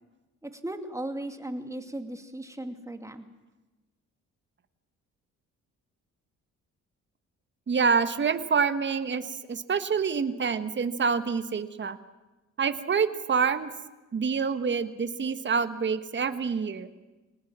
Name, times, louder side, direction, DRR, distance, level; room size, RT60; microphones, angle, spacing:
voice 1, 0.4-3.3, right 1 dB, 10° right, 7 dB, 2.5 m, -37 dB
voice 2, 7.7-12.0 12.6-13.7 14.1-16.9, right 6 dB, 40° right, 11 dB, 1.5 m, -27 dB
23.5 x 19.0 x 7.5 m, 1.1 s
cardioid pair, 90°, 30 cm